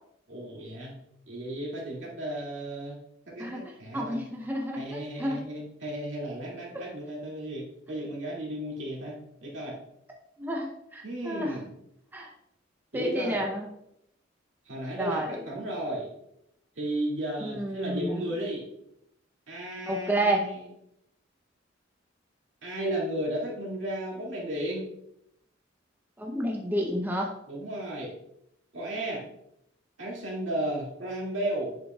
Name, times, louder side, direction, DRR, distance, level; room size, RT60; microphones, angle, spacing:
voice 1, 0.3-1.0 1.3-3.0 3.3-4.2 4.8-9.8 11.0-11.7 12.9-13.4 14.7-16.1 16.8-18.7 19.5-20.6 22.6-24.8 27.5-28.2 28.7-29.2 30.0-31.8, right 1 dB, 70° right, -3 dB, 2.2 m, -34 dB
voice 2, 3.9-5.4 10.4-11.6 12.1-12.3 12.9-13.7 15.0-15.4 17.4-18.3 19.9-20.5 26.2-27.3, right 1 dB, 10° right, 0 dB, 0.6 m, -30 dB
7.9 x 6.6 x 2.3 m, 0.79 s
head